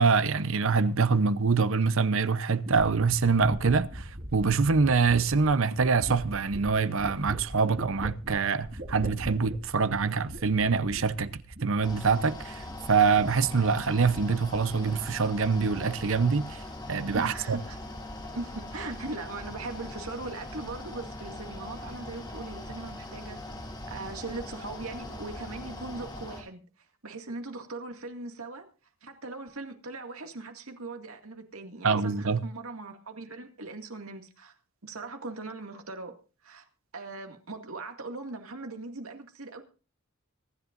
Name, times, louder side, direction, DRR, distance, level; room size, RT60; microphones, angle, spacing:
voice 1, 0.0-16.6 16.9-17.6 31.8-32.4, right 5 dB, 65° right, 0.8 m, -25 dB
sound 1, 2.6-12.3 12.6-13.5 13.8-14.6 14.9-15.4, equal, 50° right, 2.0 m, -41 dB
Mechanical fan, 11.8-26.4, left 1 dB, 20° left, 3.7 m, -41 dB
voice 2, 17.1-17.8 18.2-23.4 23.9-26.6 27.0-28.6 29.0-34.5 34.8-36.1 36.4-36.7 36.9-39.6, right 3 dB, 85° right, 2.2 m, -40 dB
25.0 x 11.0 x 2.6 m
head